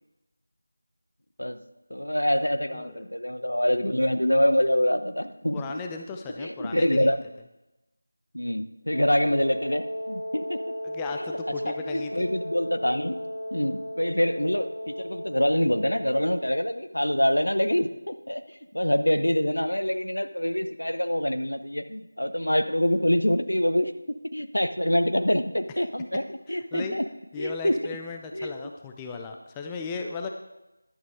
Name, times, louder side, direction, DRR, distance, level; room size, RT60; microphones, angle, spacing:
voice 1, 1.9-5.8 6.4-7.2 8.3-10.6 11.3-11.4 11.6-13.2 13.5-23.9 24.3-27.0 27.4-28.0 28.3-28.6, equal, 80° left, 10 dB, 0.9 m, -25 dB
voice 2, 2.7-3.0 5.5-7.2 10.8-12.3 26.5-27.0 27.3-30.3, left 4 dB, 10° left, 3 dB, 0.5 m, -36 dB
Wind instrument woodwind instrument, 8.9-16.8, equal, 45° left, 3.6 m, -35 dB
12.0 x 11.5 x 3.7 m, 0.97 s
figure-of-eight pair, 165°, 0 cm